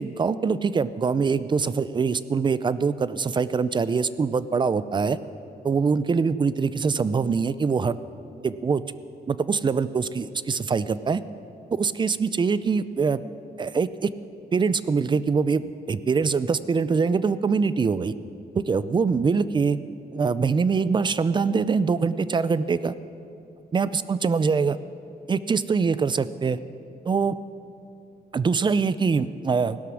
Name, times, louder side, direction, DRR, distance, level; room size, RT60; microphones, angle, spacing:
voice 1, 0.0-5.2 5.6-8.0 8.4-8.8 9.3-11.2 11.7-13.2 13.6-14.1 14.5-18.1 18.6-19.8 20.1-22.9 23.7-24.8 25.3-26.6 27.0-27.4 28.3-29.8, right 5 dB, 30° right, 15 dB, 0.4 m, -23 dB
17.0 x 12.0 x 6.3 m, 2.6 s
wide cardioid pair, 150°, 17 cm